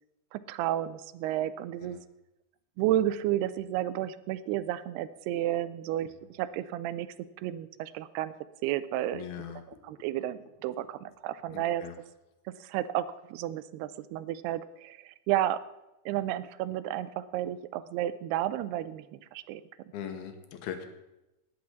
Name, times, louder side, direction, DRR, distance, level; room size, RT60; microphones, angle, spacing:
voice 1, 0.3-2.0 2.8-7.1 7.4-8.3 8.6-9.2 9.8-11.8 12.6-15.6 16.1-19.6, right 13 dB, 90° right, 15 dB, 2.7 m, -32 dB
voice 2, 9.1-9.8 11.5-12.0 19.9-20.9, left 9 dB, 80° left, 7 dB, 2.9 m, -40 dB
18.5 x 6.4 x 7.0 m, 0.96 s
omnidirectional pair, 4.5 m